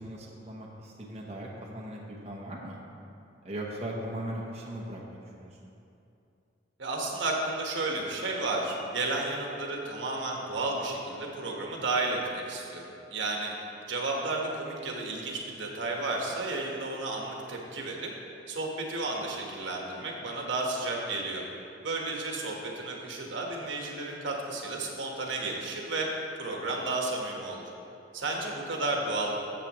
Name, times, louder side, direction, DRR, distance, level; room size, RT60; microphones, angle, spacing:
voice 1, 0.0-1.5 1.7-2.8 3.4-5.5, right 1 dB, 35° right, -3 dB, 0.9 m, -38 dB
voice 2, 6.8-13.5 13.9-18.1 18.5-21.4 21.8-26.1 26.4-27.6 28.1-29.3, right 2 dB, 75° right, 0 dB, 1.3 m, -32 dB
13.5 x 7.3 x 3.0 m, 2.7 s
head